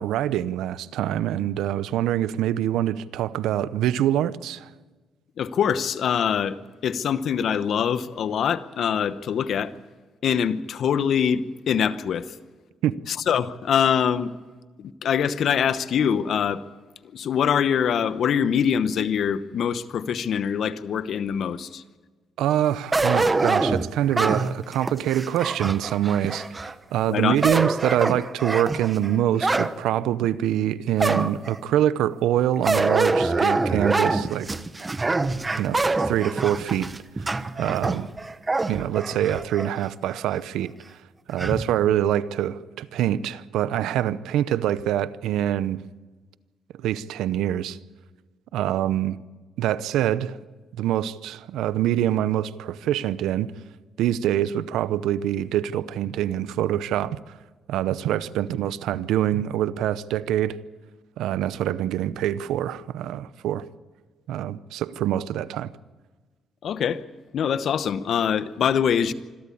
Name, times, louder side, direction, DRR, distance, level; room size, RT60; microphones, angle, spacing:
voice 1, 0.0-4.7 12.8-13.0 22.4-34.5 35.6-36.9 37.2-37.3 37.6-38.1 38.7-40.7 41.3-45.8 46.8-47.8 48.5-49.2 49.6-50.4 50.8-53.5 54.0-57.2 57.7-60.6 61.2-63.7 64.3-65.7, right 11 dB, 85° right, 0.7 m, -25 dB
voice 2, 5.4-9.7 10.2-12.4 13.1-14.3 14.8-16.6 17.1-21.8 27.1-27.4 66.6-67.0 67.3-69.1, left 8 dB, 65° left, 1.0 m, -24 dB
sound 1, 22.9-26.7 27.2-29.7 30.2-30.3 31.0-31.6 32.6-39.7 40.1-40.2 41.4-41.7, right 3 dB, 25° right, 1.0 m, -25 dB
26.0 x 13.0 x 8.5 m
cardioid pair, 90°, 0 cm